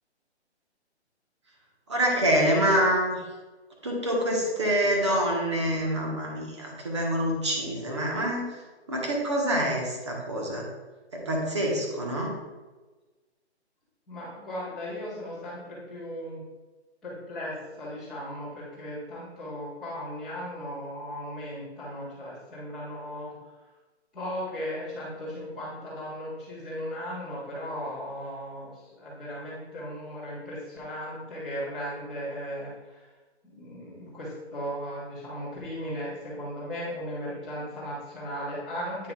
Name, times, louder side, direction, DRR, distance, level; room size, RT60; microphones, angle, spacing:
voice 1, 1.9-3.2 3.8-8.6 8.9-10.6 11.1-12.3, equal, 25° right, -2 dB, 1.3 m, -26 dB
voice 2, 14.1-16.4 17.0-23.5 24.1-33.1 33.4-39.1, equal, ahead, -17 dB, 1.4 m, -37 dB
9.6 x 6.1 x 2.4 m, 1.2 s
hypercardioid pair, 180°, 34 cm